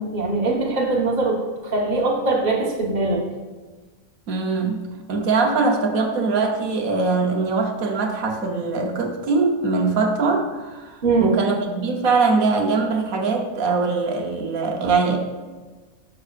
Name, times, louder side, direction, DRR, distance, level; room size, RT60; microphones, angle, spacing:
voice 1, 0.0-3.2 11.0-11.3, right 3 dB, 35° right, -1 dB, 1.2 m, -22 dB
voice 2, 4.3-4.8 5.1-15.2, right 4 dB, 80° right, 2 dB, 1.3 m, -22 dB
11.0 x 6.4 x 2.4 m, 1.3 s
omnidirectional pair, 1.5 m